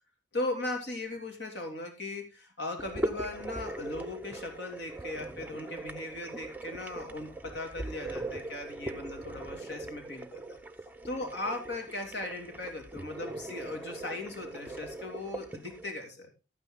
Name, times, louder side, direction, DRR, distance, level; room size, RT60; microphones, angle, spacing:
voice 1, 0.3-10.6 11.1-16.3, left 2 dB, 60° left, 3 dB, 3.0 m, -38 dB
sound 1, 2.8-15.9, right 2 dB, 10° right, 0.7 m, -40 dB
12.5 x 9.2 x 3.8 m, 0.29 s
head